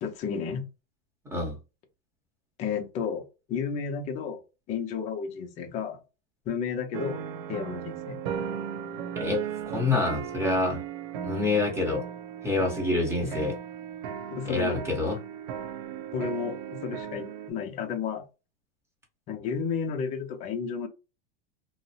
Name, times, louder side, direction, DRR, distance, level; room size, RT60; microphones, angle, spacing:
voice 1, 0.0-0.7 2.6-4.4 4.7-6.0 6.5-7.2 7.5-8.2 13.2-13.4 14.3-14.8 16.1-18.3 19.3-20.9, left 6 dB, 25° left, 0.5 m, -32 dB
sound 1, 6.9-17.5, right 8 dB, 55° right, 0.5 m, -36 dB
voice 2, 9.7-10.8 11.2-12.0 12.4-13.5 14.4-15.2, left 3 dB, 10° right, 0.9 m, -27 dB
2.6 x 2.0 x 2.7 m
supercardioid pair, 155°, 29 cm